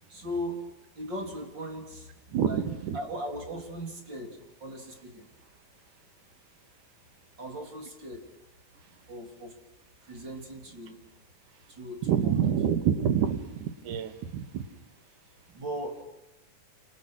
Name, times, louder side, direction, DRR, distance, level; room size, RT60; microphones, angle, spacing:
voice 1, 0.0-0.6 0.9-2.1 2.5-2.7 2.9-5.3 7.3-8.2 8.8-9.6 10.1-11.0 11.8-12.5 15.5-16.1, equal, 35° right, 2 dB, 3.7 m, -38 dB
voice 2, 2.3-3.0 12.0-14.6, right 8 dB, 75° right, 9 dB, 3.1 m, -27 dB
28.5 x 28.0 x 6.3 m, 0.95 s
omnidirectional pair, 3.6 m